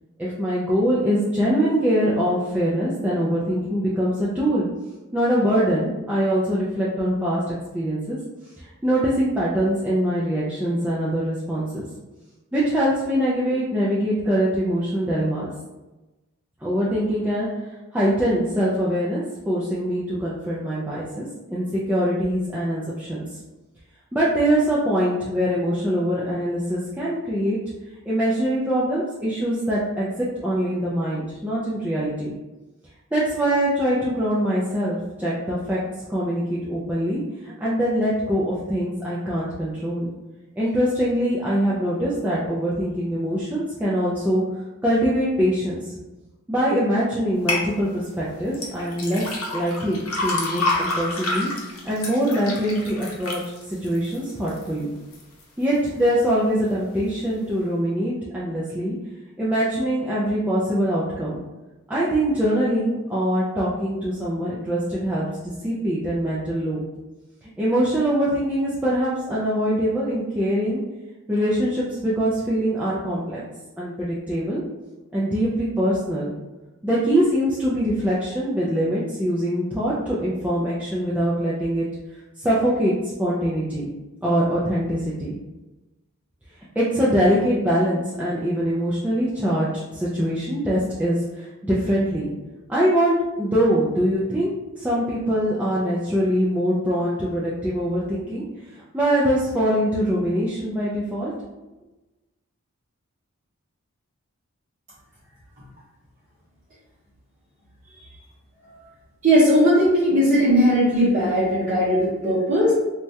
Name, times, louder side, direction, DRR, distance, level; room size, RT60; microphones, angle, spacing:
voice 1, 0.2-4.7 5.1-8.2 8.6-11.9 12.5-15.5 16.6-17.5 17.9-23.3 24.1-27.6 28.0-32.3 33.1-35.8 36.1-40.1 40.6-44.4 44.8-45.9 46.5-49.2 49.5-53.4 53.7-54.9 55.6-58.9 59.4-61.4 61.9-65.2 65.6-66.8 67.6-70.8 71.3-73.4 73.8-74.6 75.1-76.3 76.8-81.9 82.4-83.9 84.2-85.4 86.8-92.3 92.7-94.5 94.8-98.4 98.9-101.3, equal, 5° right, -8 dB, 0.3 m, -23 dB
sound 1, 47.5-47.7 48.5-54.7 55.1-55.6 56.1-56.2, left 2 dB, 75° left, 0.7 m, -28 dB
voice 2, 109.2-112.7, equal, 35° right, -11 dB, 0.7 m, -18 dB
3.2 x 2.2 x 2.7 m, 1.1 s
head